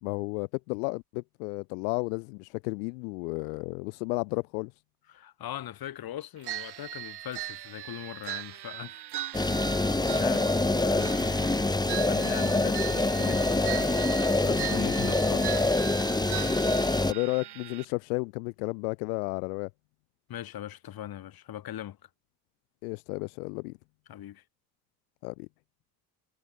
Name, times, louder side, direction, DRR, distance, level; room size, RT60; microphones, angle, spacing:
voice 1, 0.0-4.7 17.1-19.7 22.8-23.8 25.2-25.5, left 30 dB, 80° left, 1.8 m, -32 dB
voice 2, 5.1-9.1 9.3-11.4 11.9-13.9 14.4-15.6 20.3-22.1 24.1-24.4, left 12 dB, 50° left, 2.6 m, -40 dB
sound 1, 6.4-17.8, right 14 dB, 55° right, 2.9 m, -39 dB
sound 2, 9.3-17.1, left 2 dB, 10° left, 1.4 m, -25 dB
hypercardioid pair, 70°, 46 cm